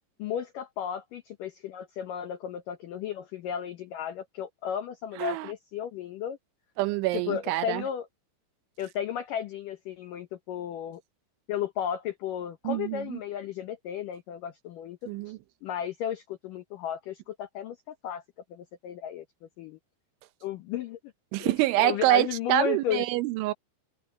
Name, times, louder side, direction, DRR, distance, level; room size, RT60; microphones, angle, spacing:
voice 1, 0.2-6.4 7.1-8.1 8.8-11.0 11.5-15.0 15.3-15.4 15.6-18.2 18.5-19.3 19.6-19.8 20.4-21.0 21.4-23.0, left 9 dB, 85° left, 1.8 m, -34 dB
voice 2, 5.2-5.5 6.8-7.8 12.6-13.2 15.1-15.4 21.3-23.5, right 16 dB, 85° right, 3.3 m, -26 dB
omnidirectional pair, 5.4 m